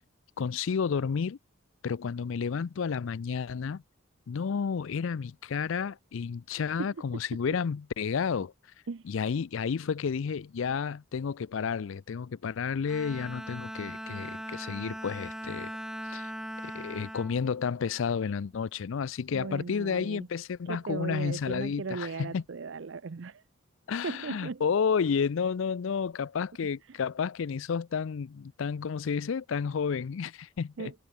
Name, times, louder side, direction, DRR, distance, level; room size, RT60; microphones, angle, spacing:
voice 1, 0.4-1.4 1.8-3.8 4.3-8.5 9.1-15.7 16.1-16.3 16.6-22.4 23.9-30.9, left 6 dB, 70° left, 0.4 m, -31 dB
Bowed string instrument, 12.9-18.4, equal, 5° right, 1.2 m, -40 dB
voice 2, 19.3-20.3 20.7-23.4 24.0-24.6 26.9-27.0 30.8-30.9, right 4 dB, 60° right, 0.5 m, -37 dB
head